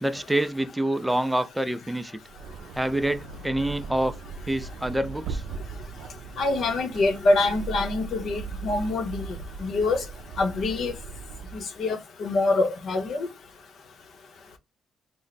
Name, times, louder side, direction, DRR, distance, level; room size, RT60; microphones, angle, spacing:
voice 1, 0.0-2.2 2.7-4.1 4.5-5.4, right 1 dB, 5° right, 0.4 m, -26 dB
sound 1, 2.2-11.7, right 4 dB, 80° right, 0.4 m, -38 dB
voice 2, 6.4-10.0 10.4-10.9 11.5-13.3, left 2 dB, 65° left, 0.7 m, -25 dB
3.1 x 2.1 x 4.0 m
cardioid pair, 90°, 0 cm